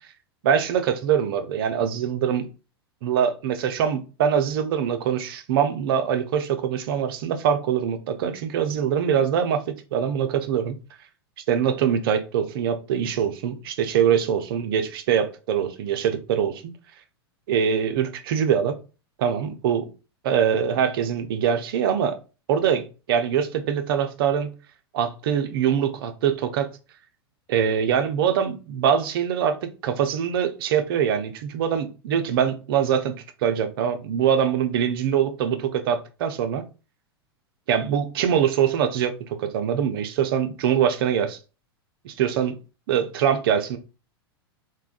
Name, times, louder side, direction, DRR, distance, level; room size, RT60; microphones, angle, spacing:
voice 1, 0.4-2.5 3.0-10.8 11.5-16.6 17.5-18.8 19.2-19.9 20.2-22.2 22.5-24.5 24.9-26.7 27.5-33.1 33.4-36.6 37.7-39.1 39.4-41.4 42.0-42.6 42.9-43.8, right 8 dB, 60° right, 0.6 m, -23 dB
3.4 x 2.2 x 2.4 m
hypercardioid pair, 95°, 13 cm